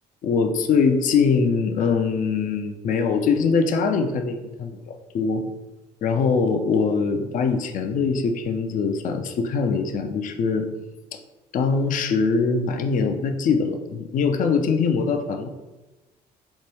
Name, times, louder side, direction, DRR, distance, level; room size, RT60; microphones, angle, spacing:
voice 1, 0.2-5.4 6.0-10.7 11.5-15.5, left 5 dB, 40° left, 6 dB, 0.4 m, -22 dB
3.1 x 2.2 x 3.1 m, 1.1 s
hypercardioid pair, 55°, 21 cm